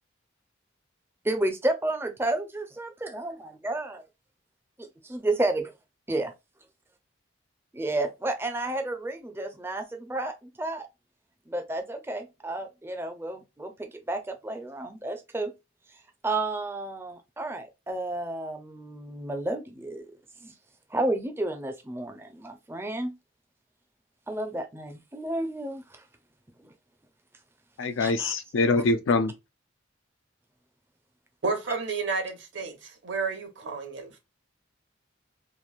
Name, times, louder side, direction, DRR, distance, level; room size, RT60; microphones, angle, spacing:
voice 1, 1.2-4.0 4.8-5.7 6.1-6.3 7.7-10.9 11.5-15.5 16.2-20.1 20.4-20.5 20.9-23.1 24.3-26.0 26.6-26.7 28.0-28.3, right 2 dB, 10° right, 0.4 m, -31 dB
voice 2, 27.8-29.3, left 3 dB, 80° left, 0.4 m, -24 dB
voice 3, 31.4-34.2, right 4 dB, 65° right, 0.8 m, -31 dB
3.0 x 2.5 x 2.3 m
head